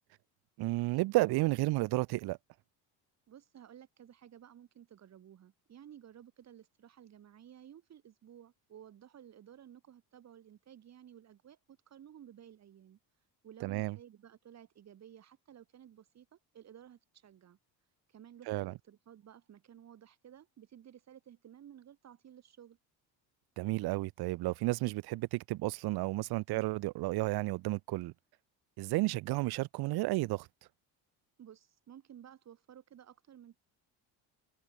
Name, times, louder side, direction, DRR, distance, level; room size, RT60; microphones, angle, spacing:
voice 1, 0.6-2.4 13.6-14.0 18.5-18.7 23.6-28.1 28.8-30.5, right 20 dB, 60° right, 0.8 m, -32 dB
voice 2, 3.3-13.0 13.4-17.6 18.1-22.8 31.4-33.6, right 10 dB, 40° right, 3.5 m, -55 dB
cardioid pair, 160°, 43 cm